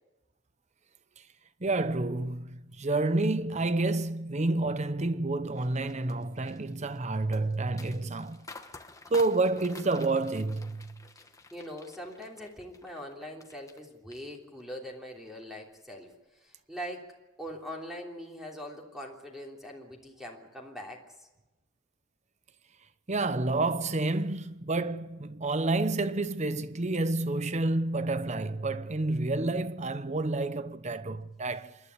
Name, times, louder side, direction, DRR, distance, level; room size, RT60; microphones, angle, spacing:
voice 1, 1.6-8.5 9.1-10.9 23.1-31.8, right 2 dB, 35° right, 0.9 m, -29 dB
sound 1, 5.6-13.8 14.1-14.8 15.2-15.4, left 3 dB, 15° left, 1.3 m, -50 dB
voice 2, 11.5-16.1 16.3-17.1 17.4-21.3, equal, ahead, 3.2 m, -42 dB
27.5 x 12.0 x 9.8 m
head